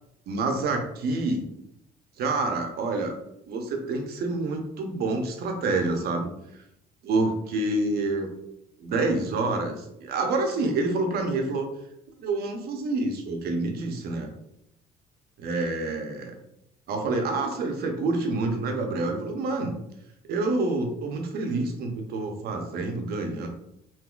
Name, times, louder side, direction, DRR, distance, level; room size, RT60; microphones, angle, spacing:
voice 1, 0.3-1.4 2.2-3.1 3.5-6.3 7.0-8.3 8.8-11.7 12.2-14.3 15.4-16.4 16.9-19.7 20.3-23.5, right 3 dB, 65° right, 3 dB, 0.7 m, -27 dB
3.7 x 2.6 x 2.4 m, 0.80 s
cardioid pair, 110°, 17 cm